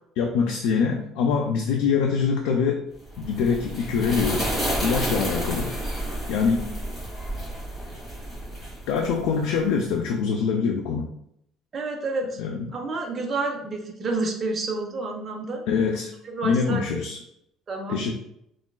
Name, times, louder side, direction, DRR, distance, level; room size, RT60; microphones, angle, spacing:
voice 1, 0.2-2.8 3.2-4.5 4.8-5.7 6.3-6.7 8.9-11.1 12.4-12.8 15.7-16.1 16.4-17.2 17.9-18.1, left 5 dB, 85° left, 2 dB, 0.3 m, -24 dB
sound 1, 3.1-9.7, right 1 dB, 15° left, 1.1 m, -30 dB
voice 2, 11.7-12.4 12.7-15.6 16.2-17.0 17.7-18.1, right 3 dB, 25° right, 1 dB, 0.4 m, -29 dB
3.8 x 2.3 x 2.2 m, 0.76 s
cardioid pair, 170°, 0 cm